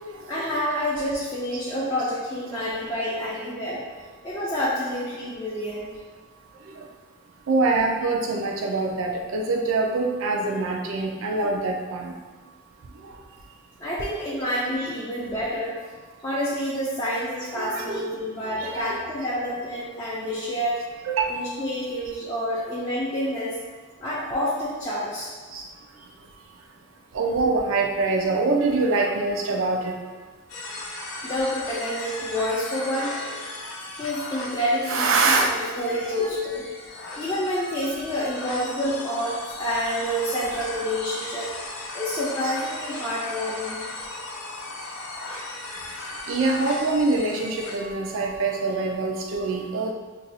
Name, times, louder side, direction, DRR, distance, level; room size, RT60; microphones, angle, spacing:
voice 1, 0.3-3.8 4.2-5.9 13.8-15.7 16.2-20.8 21.3-23.6 24.0-25.3 31.2-33.1 33.9-36.6 37.2-41.5 41.9-43.8, equal, 15° left, -9 dB, 0.5 m, -28 dB
voice 2, 7.5-12.1 14.9-15.0 17.6-18.0 18.6-19.0 21.1-21.3 25.5-25.6 27.1-29.9 34.9-35.5 36.0-36.3 42.4-42.5 46.3-49.9, right 3 dB, 65° right, 1 dB, 0.4 m, -24 dB
sound 1, 30.5-47.8, left 2 dB, 70° left, 0.5 m, -37 dB
2.6 x 2.3 x 4.1 m, 1.4 s
head